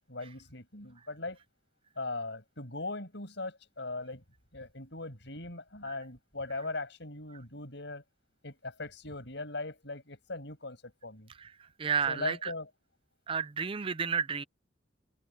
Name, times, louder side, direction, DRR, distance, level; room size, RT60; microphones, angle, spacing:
voice 1, 0.1-1.4 2.0-4.2 4.5-8.0 8.4-11.3 12.1-12.7, left 2 dB, 60° left, 7.4 m, -39 dB
voice 2, 11.3-12.5 13.3-14.4, right 6 dB, 25° right, 0.4 m, -32 dB
open air
head